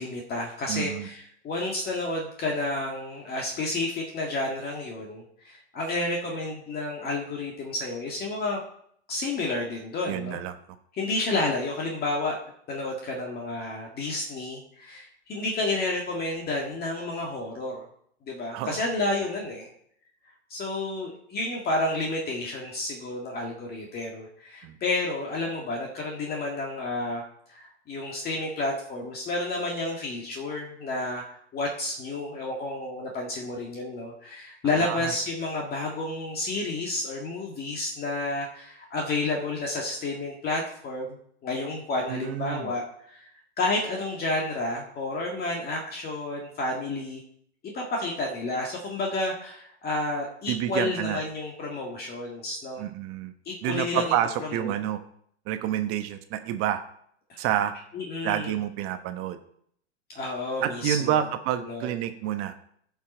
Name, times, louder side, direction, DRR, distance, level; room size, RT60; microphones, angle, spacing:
voice 1, 0.0-8.6 9.1-10.4 10.9-12.4 12.7-17.8 18.2-19.7 20.5-27.2 27.5-43.3 43.6-47.2 47.7-52.9 53.5-54.1 54.5-54.7 57.3-57.4 57.9-58.6 60.2-61.3 61.6-62.0, left 2 dB, 25° left, -1 dB, 1.8 m, -30 dB
voice 2, 0.7-1.1 10.1-10.5 18.5-18.8 24.6-24.8 34.8-35.1 42.1-42.7 50.5-51.2 52.8-53.3 53.6-55.0 55.5-56.8 57.4-57.7 58.2-59.4 60.6-62.5, right 11 dB, 40° right, 8 dB, 1.1 m, -28 dB
16.0 x 5.7 x 4.3 m, 0.67 s
hypercardioid pair, 120°, 35 cm